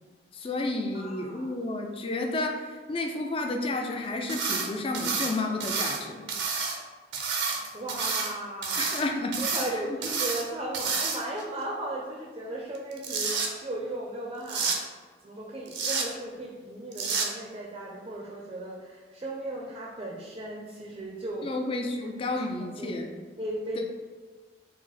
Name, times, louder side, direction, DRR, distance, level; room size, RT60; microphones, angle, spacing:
voice 1, 0.3-6.2 8.8-9.7 21.4-23.1, left 2 dB, 30° left, 3 dB, 0.4 m, -31 dB
voice 2, 0.9-1.5 7.5-8.9 9.4-14.8 15.2-21.6 22.8-22.9 23.4-23.8, right 1 dB, 25° right, -3 dB, 0.5 m, -36 dB
sound 1, 4.3-4.7 4.9-6.0 6.3-6.8 7.1-8.3 8.6-9.0 9.3-9.7 10.0-10.4 10.7-11.4 12.7-13.5 14.5-14.8 15.7-16.1 16.9-17.3, right 5 dB, 80° right, 0.6 m, -29 dB
4.7 x 2.1 x 4.0 m, 1.4 s
head